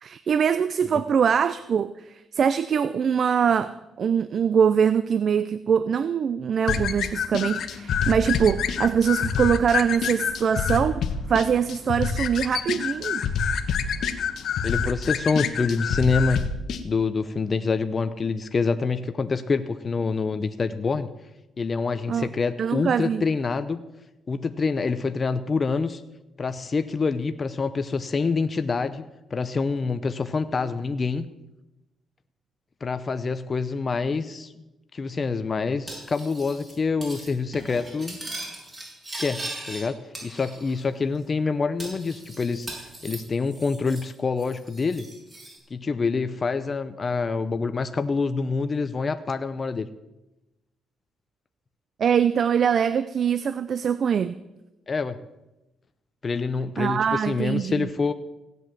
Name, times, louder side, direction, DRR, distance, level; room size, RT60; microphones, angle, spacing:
voice 1, 0.0-10.9 11.3-13.2 22.1-22.3 22.6-23.2 52.0-54.4 56.8-57.9, right 7 dB, 55° right, 14 dB, 0.5 m, -23 dB
sound 1, 6.7-16.8, left 6 dB, 70° left, 1.2 m, -27 dB
voice 2, 14.6-16.5 16.8-21.1 21.6-23.8 24.3-26.0 26.4-29.0 29.3-31.3 32.8-34.5 34.9-38.2 39.2-42.7 43.0-45.1 45.7-49.9 54.9-55.2 56.2-58.1, left 4 dB, 35° left, 10 dB, 0.8 m, -26 dB
Cutlery silverware, 35.9-36.7 37.0-37.3 37.5-39.8 40.1-40.9 41.1-41.2 41.8-44.1 44.4-45.6, right 2 dB, 25° right, 6.8 m, -39 dB
16.5 x 8.1 x 7.6 m, 0.98 s
cardioid pair, 90°, 0 cm